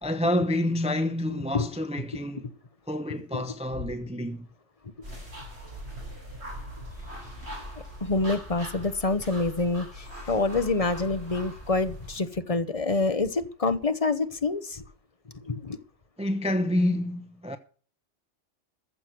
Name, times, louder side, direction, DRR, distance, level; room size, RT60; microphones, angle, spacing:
voice 1, 0.0-2.5 2.9-4.5 10.1-10.3 16.2-17.6, left 1 dB, 5° right, 0.8 m, -28 dB
sound 1, 5.0-12.2, equal, 65° right, 5.9 m, -41 dB
voice 2, 8.0-14.8 15.4-15.8, left 3 dB, 30° left, 1.1 m, -27 dB
14.5 x 6.4 x 7.7 m
omnidirectional pair, 1.2 m